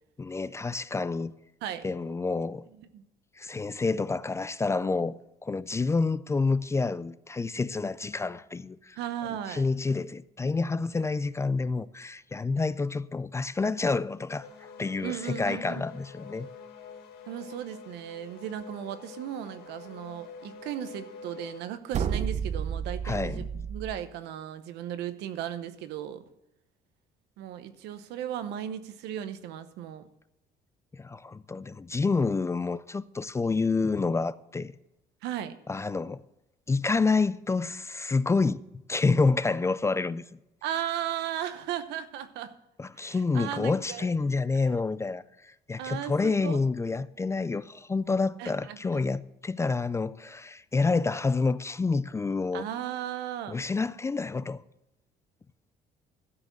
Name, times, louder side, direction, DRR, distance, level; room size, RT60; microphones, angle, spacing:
voice 1, 0.2-1.3 1.8-2.7 3.4-9.0 9.5-14.5 14.8-16.5 23.0-23.6 30.9-34.7 35.7-36.2 36.7-38.6 38.9-40.3 42.8-52.7 53.5-54.6, left 4 dB, 15° left, 0.3 m, -28 dB
voice 2, 9.0-9.7 15.0-15.8 17.3-26.2 27.4-30.1 35.2-35.6 40.6-42.5 43.0-44.1 45.8-46.6 48.4-49.0 52.5-53.6, right 10 dB, 85° right, 0.9 m, -36 dB
sound 1, 14.4-21.6, left 5 dB, 80° left, 1.7 m, -46 dB
sound 2, 21.9-24.0, right 7 dB, 45° right, 0.6 m, -31 dB
12.5 x 5.1 x 7.9 m
cardioid pair, 110°, 17 cm